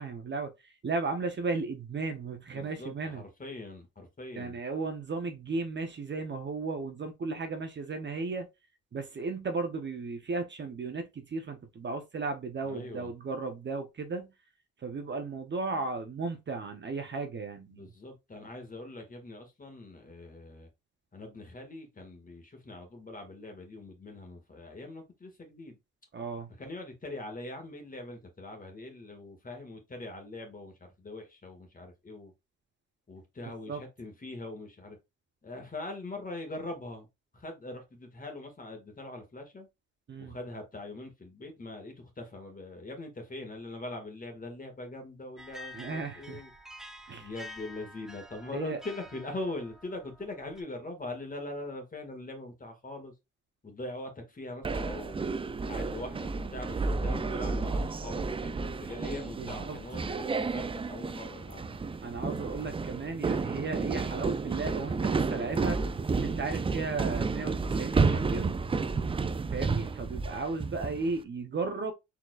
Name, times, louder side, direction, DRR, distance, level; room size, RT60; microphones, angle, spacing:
voice 1, 0.0-3.2 4.3-8.5 8.9-14.3 14.8-17.9 26.1-26.5 33.7-33.8 40.1-40.4 45.7-46.4 47.1-47.3 48.5-48.8 59.4-59.8 60.1-60.2 62.0-65.8 66.1-68.6 69.5-71.9, right 3 dB, 35° right, 0.9 m, -35 dB
voice 2, 2.5-4.6 12.6-13.1 17.7-20.7 21.1-25.8 26.6-32.3 33.1-35.0 35.4-37.1 37.3-39.7 40.2-46.5 47.2-53.1 53.6-55.3 55.7-61.8, left 2 dB, 25° left, 1.8 m, -42 dB
sound 1, 45.4-50.6, left 1 dB, ahead, 0.8 m, -48 dB
sound 2, 54.6-71.1, right 4 dB, 20° right, 0.4 m, -31 dB
4.4 x 3.9 x 2.4 m
cardioid pair, 90°, 30 cm